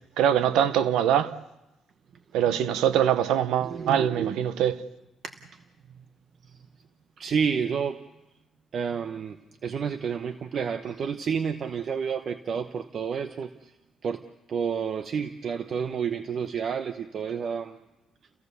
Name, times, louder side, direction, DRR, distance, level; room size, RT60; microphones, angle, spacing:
voice 1, 0.2-1.4 2.3-4.8, right 10 dB, 90° right, 0.9 m, -23 dB
voice 2, 3.6-4.4 5.2-5.3 6.4-6.5 7.2-8.0 8.7-9.4 9.6-13.7 14.0-14.2 14.5-17.8, right 6 dB, 55° right, 0.9 m, -30 dB
30.0 x 16.5 x 6.8 m
cardioid pair, 90°, 0 cm